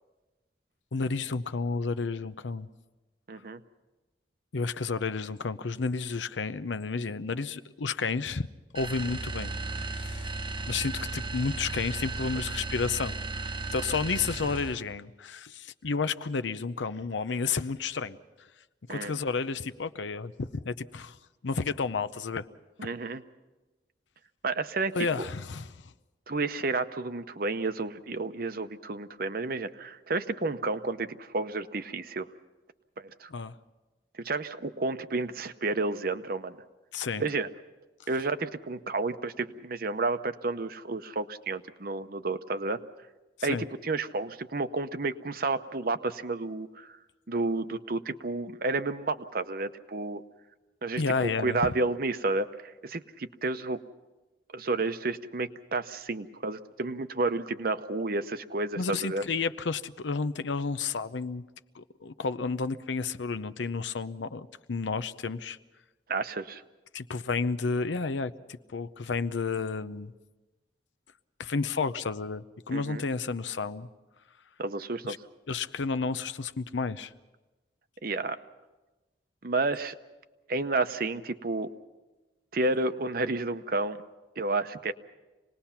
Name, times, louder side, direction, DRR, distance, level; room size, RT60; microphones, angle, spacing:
voice 1, 0.9-2.7 4.5-8.5 8.7-9.5 9.8-10.3 10.7-18.2 18.9-21.2 21.4-22.5 24.9-25.9 33.3-33.6 36.9-37.2 43.4-43.6 51.0-51.7 58.8-61.5 61.7-65.6 66.9-70.1 71.4-73.9 75.0-75.2 75.5-77.1, left 4 dB, 90° left, 13 dB, 0.7 m, -31 dB
voice 2, 3.3-3.6 18.9-19.1 22.8-23.2 24.4-25.3 26.3-32.3 33.0-33.3 34.2-36.5 37.2-37.5 38.1-42.8 43.4-46.9 47.3-50.2 50.8-53.8 54.5-59.2 66.1-66.6 72.7-73.0 74.6-75.2 78.0-78.4 79.4-79.9 80.5-81.7 82.5-84.0 84.4-84.9, right 3 dB, 55° right, 11 dB, 0.8 m, -31 dB
sound 1, 8.7-14.9, right 3 dB, 30° right, 0.9 m, -35 dB
26.5 x 19.5 x 5.8 m, 1.1 s
head